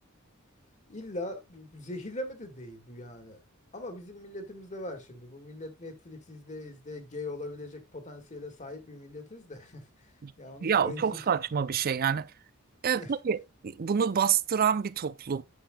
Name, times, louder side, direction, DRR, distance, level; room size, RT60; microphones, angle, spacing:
voice 1, 0.9-3.4 3.7-9.8 10.4-11.4 12.9-13.1, left 1 dB, 35° left, 1.8 m, -41 dB
voice 2, 10.6-12.3 12.8-15.4, right 7 dB, 45° right, 0.5 m, -27 dB
10.0 x 7.7 x 2.3 m
head